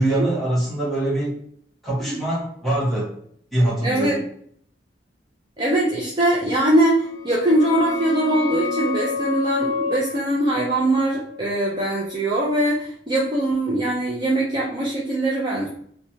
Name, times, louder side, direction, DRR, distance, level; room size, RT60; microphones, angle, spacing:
voice 1, 0.0-1.4 1.8-3.1 3.5-4.2, right 1 dB, ahead, -8 dB, 1.2 m, -23 dB
voice 2, 3.8-4.2 5.6-15.7, right 1 dB, 25° right, -5 dB, 0.5 m, -22 dB
sound 1, 7.0-12.4, left 5 dB, 85° left, 0.5 m, -30 dB
3.0 x 2.2 x 2.7 m, 0.62 s
head